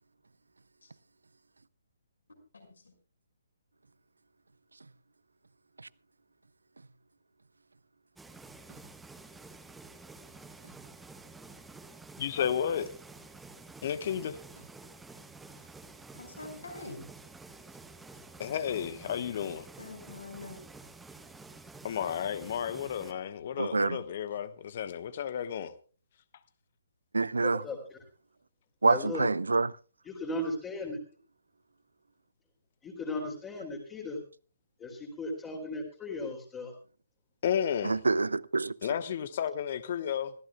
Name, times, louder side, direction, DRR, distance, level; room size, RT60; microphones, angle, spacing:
voice 1, 2.5-2.9 16.2-17.0 19.8-20.6, left 2 dB, 65° left, 6.0 m, -45 dB
sound 1, 8.2-23.1, right 3 dB, 5° right, 1.2 m, -50 dB
voice 2, 12.2-12.9 13.8-14.4 18.4-19.7 21.8-25.7 37.4-38.0 38.8-40.3, left 8 dB, 40° left, 1.2 m, -32 dB
voice 3, 23.6-24.0 27.1-27.6 28.8-29.7 37.8-38.7, right 3 dB, 70° right, 0.6 m, -26 dB
voice 4, 27.6-28.0 28.8-29.3 30.0-31.0 32.8-34.2 34.8-36.7, left 2 dB, 15° left, 3.0 m, -36 dB
25.5 x 15.0 x 2.3 m
figure-of-eight pair, 135°, 0 cm